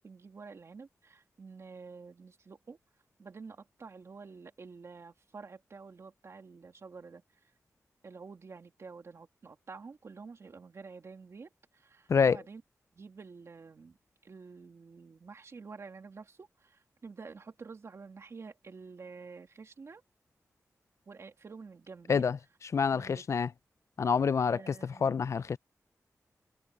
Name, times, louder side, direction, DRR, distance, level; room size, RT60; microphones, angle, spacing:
voice 1, 0.0-2.8 3.2-7.2 8.0-12.6 12.9-14.0 14.2-20.0 21.1-22.3 22.9-23.3 24.5-25.5, right 4 dB, 55° right, 2.8 m, -49 dB
voice 2, 22.7-23.5 24.0-24.7 25.0-25.6, left 6 dB, 60° left, 0.4 m, -27 dB
wide cardioid pair, 155°, 6 cm